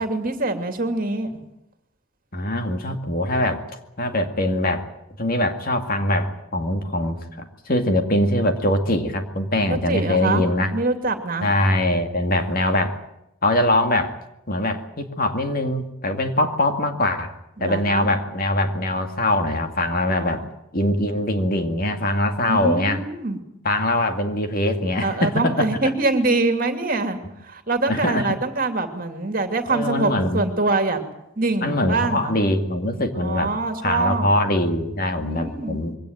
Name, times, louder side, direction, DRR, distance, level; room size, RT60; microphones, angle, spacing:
voice 1, 0.0-1.3 9.7-10.4 10.7-11.5 17.6-18.1 20.1-20.5 22.5-23.4 25.0-27.2 27.4-31.0 31.4-32.4 33.2-34.3 35.2-35.8, right 3 dB, 40° right, 7 dB, 2.7 m, -24 dB
voice 2, 2.3-3.6 4.0-4.9 5.2-10.8 11.4-13.0 13.4-14.2 14.5-17.3 17.6-20.4 20.7-23.0 23.6-25.7 27.9-28.3 29.7-30.4 31.6-33.5 33.8-36.0, left 1 dB, 40° left, 6 dB, 2.2 m, -22 dB
23.0 x 18.0 x 9.2 m, 0.84 s
head